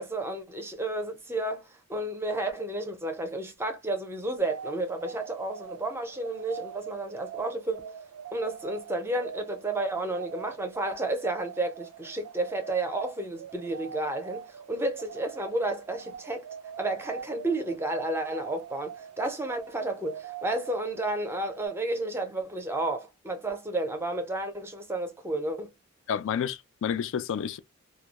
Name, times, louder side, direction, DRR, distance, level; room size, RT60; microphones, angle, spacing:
voice 1, 0.0-7.9 8.3-16.5 16.8-25.7, right 2 dB, 10° right, 0.5 m, -31 dB
sound 1, 4.4-21.7, right 8 dB, 85° right, 0.4 m, -44 dB
voice 2, 26.1-27.6, left 8 dB, 60° left, 0.3 m, -30 dB
2.2 x 2.0 x 2.8 m
head